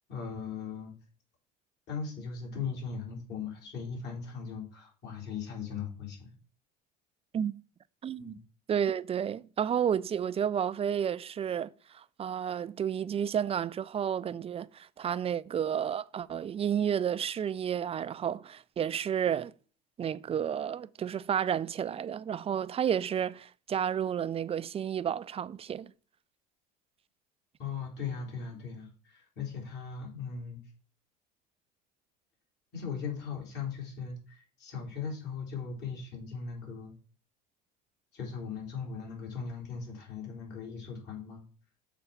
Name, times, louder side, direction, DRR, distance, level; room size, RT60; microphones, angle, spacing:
voice 1, 0.1-1.0 1.9-6.3 8.2-8.4 27.6-30.6 32.7-36.9 38.1-41.4, left 6 dB, 55° left, 3.8 m, -38 dB
voice 2, 8.0-8.4 8.7-19.5 20.0-25.9, right 8 dB, 30° right, 0.4 m, -31 dB
7.0 x 4.3 x 5.8 m
supercardioid pair, 90°, 21 cm